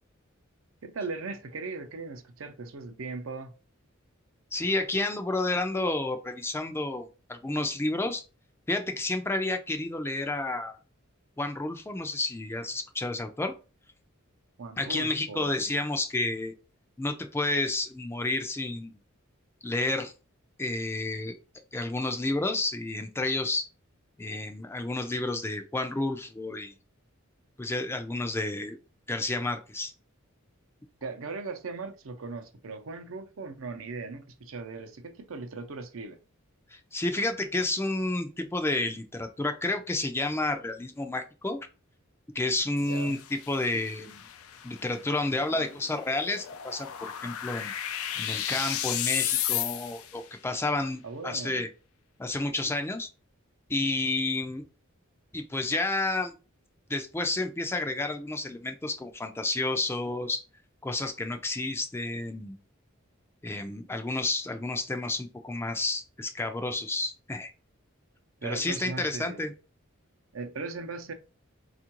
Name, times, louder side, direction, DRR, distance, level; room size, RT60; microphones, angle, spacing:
voice 1, 0.8-3.5 14.6-15.5 31.0-36.2 42.8-43.2 51.0-51.6 68.4-69.5 70.3-71.1, right 3 dB, 70° right, 0.6 m, -38 dB
voice 2, 4.5-8.2 8.7-10.8 11.4-13.5 14.8-16.5 17.0-18.9 19.6-20.1 20.6-21.3 21.7-23.7 24.2-26.7 27.6-28.8 29.1-29.9 36.7-41.6 42.3-44.3 44.6-47.7 48.2-51.7 52.2-53.1 53.7-54.6 55.3-56.3 56.9-60.4 60.8-62.6 63.4-67.5 68.4-69.5, left 2 dB, 10° left, 0.4 m, -30 dB
sound 1, 42.8-50.2, left 11 dB, 90° left, 0.4 m, -34 dB
4.4 x 2.4 x 2.9 m
head